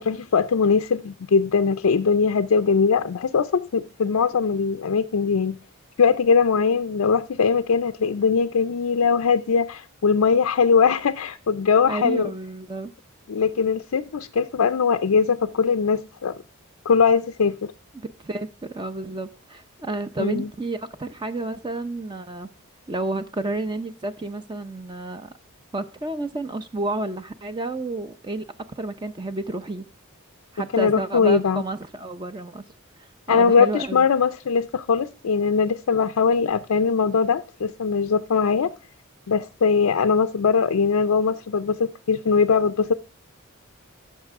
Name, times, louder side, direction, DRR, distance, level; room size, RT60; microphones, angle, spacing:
voice 1, 0.0-5.6 6.0-12.3 13.3-16.4 16.9-17.7 20.2-20.5 30.7-31.6 33.3-38.7 39.3-42.9, left 5 dB, 85° left, 0.5 m, -21 dB
voice 2, 11.9-12.9 18.2-22.5 22.9-25.3 25.7-28.5 28.8-29.9 30.5-32.6 33.0-34.1, right 2 dB, 20° right, 0.6 m, -31 dB
14.0 x 6.6 x 3.6 m
head